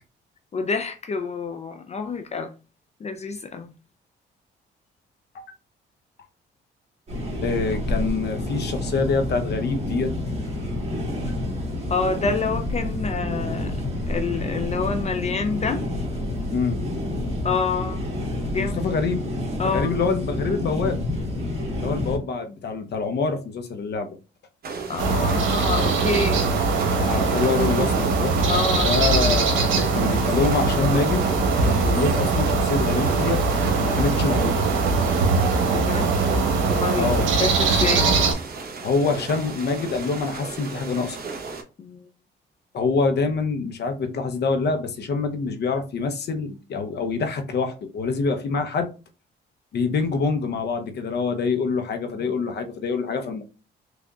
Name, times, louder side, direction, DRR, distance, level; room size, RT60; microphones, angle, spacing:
voice 1, 0.5-2.5 3.0-3.7 11.9-13.8 14.1-15.8 17.4-18.1 18.5-18.8 19.6-19.9 24.9-26.5 28.5-29.0 31.9-32.0 35.7-36.1 36.7-38.1 41.8-42.1, left 4 dB, 35° left, 0.4 m, -27 dB
sound 1, 7.1-22.2, left 1 dB, 30° right, 1.7 m, -28 dB
voice 2, 7.4-10.1 11.2-11.3 16.5-16.8 18.6-19.2 19.6-21.0 21.8-24.1 26.9-28.3 28.8-31.2 31.6-33.4 33.8-34.6 37.0-37.3 38.8-41.2 42.7-48.9 49.7-53.4, left 4 dB, 55° left, 0.8 m, -25 dB
sound 2, 24.6-41.6, right 4 dB, 50° right, 0.9 m, -35 dB
sound 3, 25.0-38.3, right 4 dB, 75° right, 1.0 m, -21 dB
3.7 x 3.4 x 2.3 m
cardioid pair, 90°, 20 cm